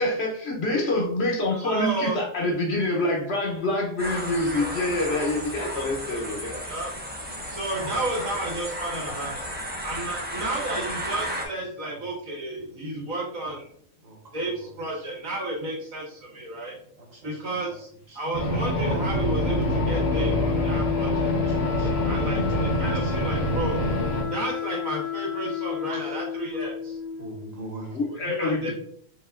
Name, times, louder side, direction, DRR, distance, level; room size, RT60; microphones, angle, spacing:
voice 1, 0.0-6.6 27.9-28.7, left 2 dB, 55° left, -1 dB, 1.0 m, -26 dB
voice 2, 1.6-2.2 6.6-6.9 7.5-9.5 9.8-13.7 14.3-16.8 17.2-17.9 18.1-21.3 22.0-23.8 24.3-27.0 28.2-28.7, right 2 dB, 75° right, -3 dB, 1.8 m, -32 dB
sound 1, 4.0-11.4, equal, 15° right, 0.3 m, -34 dB
voice 3, 14.0-14.5 21.6-22.7 25.9-26.0 27.2-28.0, right 2 dB, 30° right, -2 dB, 1.2 m, -40 dB
sound 2, 18.3-24.2, equal, 70° left, 1.3 m, -25 dB
Wind instrument woodwind instrument, 18.9-27.6, left 10 dB, 90° left, 1.8 m, -32 dB
4.9 x 3.5 x 2.4 m, 0.64 s
omnidirectional pair, 1.4 m